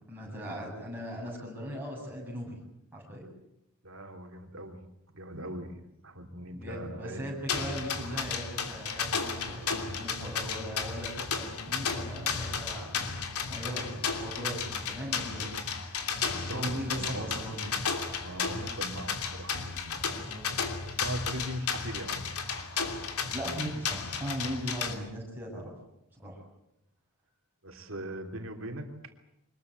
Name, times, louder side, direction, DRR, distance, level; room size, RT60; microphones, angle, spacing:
voice 1, 0.1-2.6 2.9-3.3 6.5-16.1 16.4-17.8 20.0-20.4 23.3-25.7 26.1-26.4, equal, 10° right, -3 dB, 7.7 m, -39 dB
voice 2, 3.8-4.8 5.1-7.2 8.0-8.2 16.3-17.2 18.2-20.0 20.8-22.8 27.6-29.1, right 1 dB, 60° right, 4 dB, 3.1 m, -40 dB
sound 1, 7.5-24.9, left 5 dB, 85° left, 3.0 m, -34 dB
25.0 x 21.0 x 8.1 m, 0.83 s
head